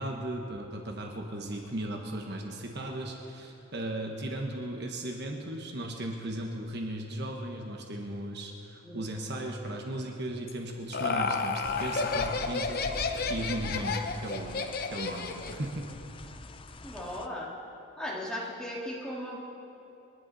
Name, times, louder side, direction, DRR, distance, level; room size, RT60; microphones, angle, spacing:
voice 1, 0.0-12.8 13.3-14.6 14.9-15.9, right 1 dB, 50° right, 1 dB, 1.4 m, -36 dB
voice 2, 8.8-9.2 16.8-17.5 18.0-19.4, left 1 dB, 5° left, -5 dB, 2.4 m, -37 dB
Laughter, 10.5-15.6, left 4 dB, 45° left, 0.8 m, -31 dB
sound 1, 11.6-17.3, left 2 dB, 25° left, 0.5 m, -43 dB
28.0 x 11.0 x 4.2 m, 2.9 s
head